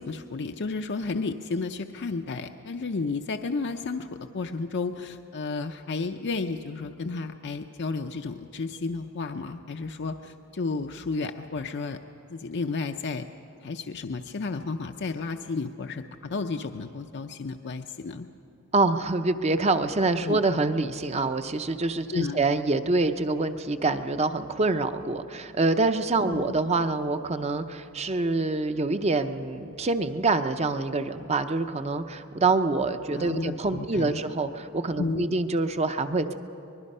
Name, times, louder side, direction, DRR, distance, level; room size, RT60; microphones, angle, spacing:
voice 1, 0.0-12.0 12.3-13.3 13.6-18.3 20.2-20.4 22.1-22.4 26.3-26.5 33.1-34.2 35.0-35.4, left 4 dB, 50° left, 6 dB, 0.6 m, -32 dB
voice 2, 18.7-36.3, right 3 dB, 30° right, 9 dB, 0.7 m, -26 dB
24.5 x 21.0 x 5.5 m, 2.7 s
head